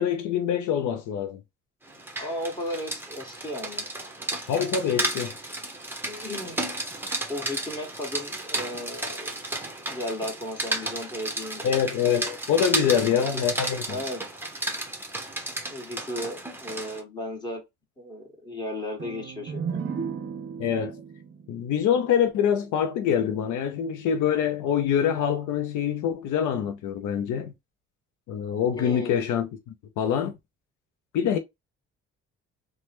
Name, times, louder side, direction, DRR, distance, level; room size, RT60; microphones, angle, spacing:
voice 1, 0.0-1.4 4.5-5.3 11.6-13.8 20.6-21.0 21.5-27.5 28.3-30.3 31.1-31.4, left 8 dB, 80° left, 0.6 m, -25 dB
Rain, 1.9-17.0, right 2 dB, 5° right, 0.8 m, -33 dB
voice 2, 2.2-3.8 6.1-6.7 7.3-9.3 9.9-11.8 12.8-13.4 13.9-14.2 15.7-17.6 18.0-19.8 28.8-29.3, left 1 dB, 15° left, 1.6 m, -35 dB
sound 1, 19.0-22.7, right 6 dB, 40° right, 0.6 m, -35 dB
3.1 x 2.2 x 2.9 m
cardioid pair, 90°, 30 cm